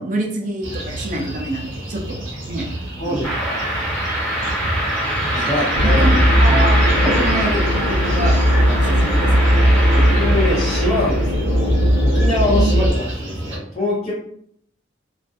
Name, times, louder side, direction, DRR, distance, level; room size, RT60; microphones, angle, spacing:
voice 1, 0.0-2.2 2.5-2.7 3.0-3.3 5.8-6.8 7.2-8.3 8.7-9.6 12.5-12.7, right 1 dB, 40° right, 1 dB, 0.5 m, -26 dB
sound 1, 0.6-13.6, right 1 dB, 90° right, 0.8 m, -30 dB
voice 2, 3.0-3.7 5.3-6.0 6.5-6.6 7.0-7.2 9.9-14.1, left 1 dB, 30° left, -10 dB, 0.7 m, -24 dB
sound 2, 3.2-11.3, equal, 10° left, 1.2 m, -24 dB
sound 3, 5.7-12.9, equal, 75° left, 0.8 m, -17 dB
2.5 x 2.4 x 2.3 m, 0.66 s
head